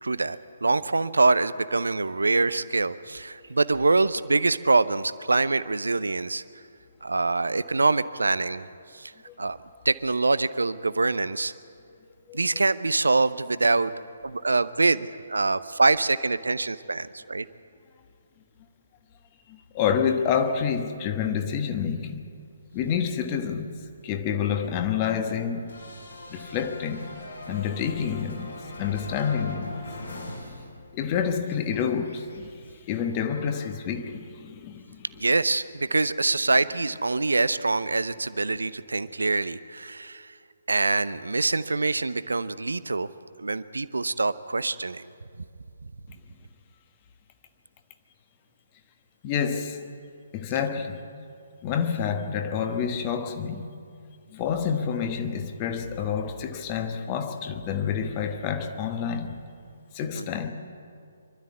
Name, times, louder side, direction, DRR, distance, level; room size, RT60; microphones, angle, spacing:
voice 1, 0.0-6.4 7.0-8.7 8.9-9.1 9.4-9.6 9.8-11.5 12.3-13.9 14.2-17.5 35.2-40.3 40.7-43.1 43.4-45.1 60.2-60.3, right 3 dB, 70° right, 0.6 m, -24 dB
voice 2, 19.5-22.2 22.7-23.8 24.0-25.7 26.3-27.1 27.5-29.8 30.9-35.0 49.2-49.8 50.3-51.0 51.6-53.7 54.3-59.4 59.9-60.5, left 7 dB, 25° left, 1.2 m, -28 dB
sound 1, 25.7-31.1 31.4-33.7, left 1 dB, 70° left, 5.0 m, -42 dB
24.5 x 12.5 x 8.4 m
figure-of-eight pair, 135°, 0 cm